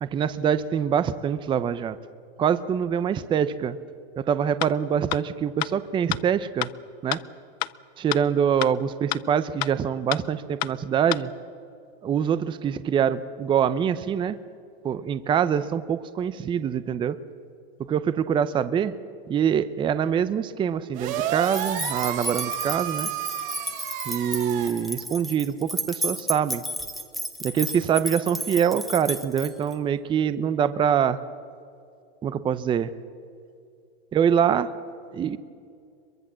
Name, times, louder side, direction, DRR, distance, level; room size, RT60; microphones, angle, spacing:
voice 1, 0.0-2.0 2.4-3.8 4.2-6.7 7.0-7.2 8.0-11.3 12.0-14.4 14.8-17.2 17.9-18.9 19.3-23.1 24.1-26.6 27.4-31.2 32.2-32.9 34.1-34.7 35.1-35.4, right 8 dB, 15° right, 14 dB, 0.6 m, -24 dB
sound 1, 4.6-4.7 5.1-5.2 5.6-5.7 6.1-6.2 6.6-6.7 7.1-7.2 7.6-7.7 8.1-8.2 8.6-8.7 9.1-9.2 9.6-9.7 10.1-10.2 10.6-10.7 11.1-11.2, left 21 dB, 50° left, 0.6 m, -27 dB
sound 2, 20.9-24.7, right 10 dB, 55° right, 3.4 m, -31 dB
sound 3, 21.4-29.8, equal, ahead, 1.2 m, -33 dB
23.0 x 22.5 x 7.5 m, 2.4 s
supercardioid pair, 140°, 30 cm